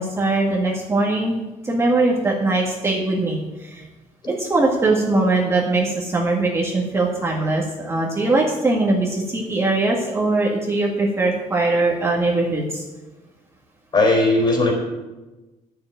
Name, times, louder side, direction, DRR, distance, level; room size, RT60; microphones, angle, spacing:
voice 1, 0.0-1.3 1.6-3.8 4.4-12.8, right 2 dB, 20° right, -3 dB, 1.8 m, -21 dB
voice 2, 13.9-14.7, left 2 dB, 35° left, 1 dB, 3.8 m, -17 dB
10.5 x 6.9 x 9.0 m, 1.1 s
cardioid pair, 140°, 14 cm